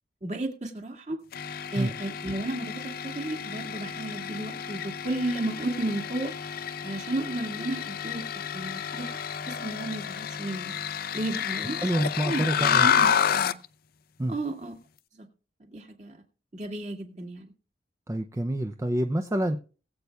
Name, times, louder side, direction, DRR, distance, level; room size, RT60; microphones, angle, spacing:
voice 1, 0.2-1.2 1.7-6.3 6.8-9.2 9.5-10.7 11.1-11.9 12.2-13.5 14.3-14.7 15.2-15.3 15.6-16.2 16.5-17.5, right 2 dB, 40° right, 2.1 m, -33 dB
sound 1, 1.3-13.6, left 8 dB, 55° left, 0.5 m, -30 dB
voice 2, 11.8-12.9 14.2-14.3 18.1-19.6, right 1 dB, 15° right, 0.5 m, -27 dB
20.5 x 8.2 x 2.3 m
head